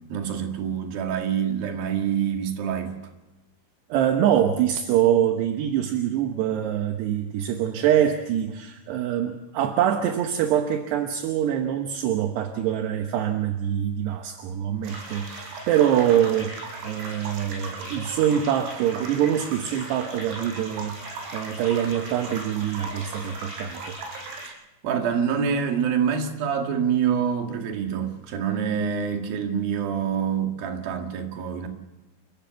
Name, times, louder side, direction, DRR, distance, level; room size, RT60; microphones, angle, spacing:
voice 1, 0.0-3.0 24.4-24.5 24.8-31.7, right 7 dB, 55° right, 3.3 m, -26 dB
voice 2, 3.9-16.5 16.8-24.0, right 10 dB, 70° right, 2.8 m, -24 dB
sound 1, 14.8-24.5, right 2 dB, 85° right, 6.4 m, -37 dB
29.0 x 15.5 x 7.0 m
omnidirectional pair, 5.9 m